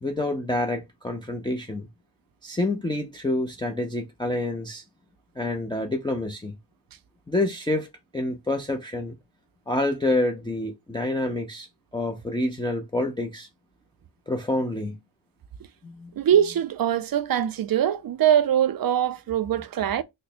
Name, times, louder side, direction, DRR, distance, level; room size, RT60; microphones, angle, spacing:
voice 1, 0.0-1.9 2.4-4.8 5.4-6.6 7.3-9.1 9.7-11.7 11.9-13.5 14.3-15.0 15.8-16.2, left 2 dB, 10° left, 0.5 m, -27 dB
voice 2, 16.2-20.0, right 10 dB, 50° right, 0.5 m, -22 dB
3.3 x 2.1 x 4.1 m
wide cardioid pair, 85°, 47 cm